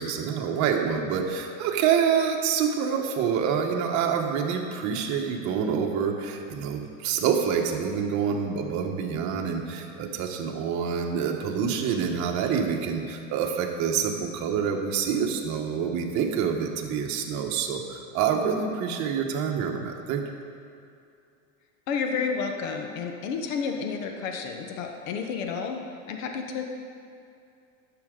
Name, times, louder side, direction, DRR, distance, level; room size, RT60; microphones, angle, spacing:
voice 1, 0.0-20.2, right 7 dB, 45° right, 2 dB, 1.1 m, -27 dB
voice 2, 21.9-25.8 26.1-26.6, left 5 dB, 75° left, 3 dB, 1.1 m, -30 dB
11.5 x 7.0 x 3.8 m, 2.5 s
supercardioid pair, 130°, 40 cm